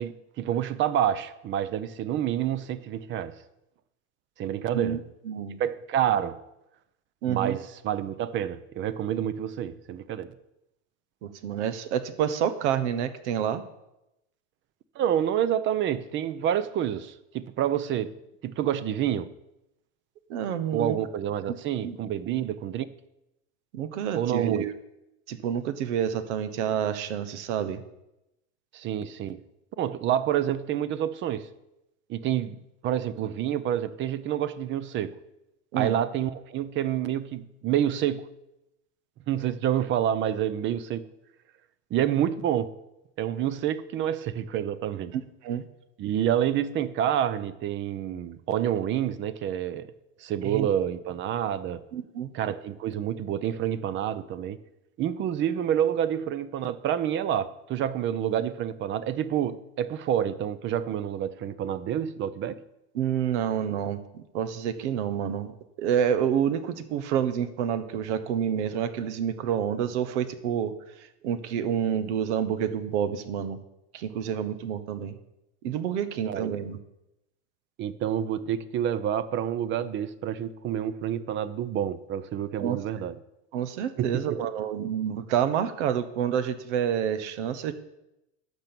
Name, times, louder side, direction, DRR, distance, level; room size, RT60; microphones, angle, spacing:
voice 1, 0.0-3.4 4.4-5.0 5.6-6.4 7.3-10.3 15.0-18.1 18.4-19.3 20.7-22.9 24.1-24.7 28.7-29.4 29.8-31.5 32.1-35.2 35.7-38.3 39.3-41.1 41.9-42.7 43.2-45.1 46.0-49.9 50.2-51.8 52.3-54.6 55.0-62.6 76.2-76.5 77.8-83.2 84.0-84.4, right 10 dB, 35° right, 0.6 m, -28 dB
voice 2, 5.2-5.6 7.2-7.6 11.2-13.6 20.3-21.0 21.8-22.0 23.7-24.7 25.3-27.8 35.7-36.0 45.1-45.6 50.4-50.7 51.9-52.3 62.9-70.7 71.2-73.6 73.9-75.2 75.6-76.8 82.6-82.8 83.5-87.7, right 9 dB, 85° right, 1.2 m, -28 dB
11.5 x 6.1 x 6.9 m
supercardioid pair, 140°, 34 cm